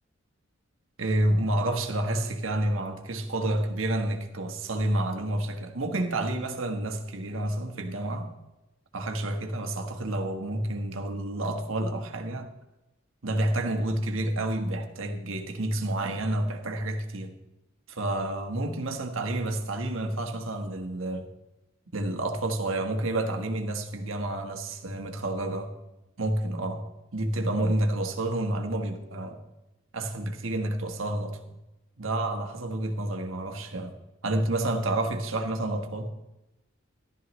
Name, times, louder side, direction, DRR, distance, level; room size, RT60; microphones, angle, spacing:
voice 1, 1.0-8.3 8.9-12.5 13.2-17.3 17.9-21.3 21.9-25.7 26.2-29.4 29.9-31.4 32.0-33.9 34.2-36.1, right 1 dB, 75° right, 1.3 m, -29 dB
14.5 x 12.0 x 3.1 m
head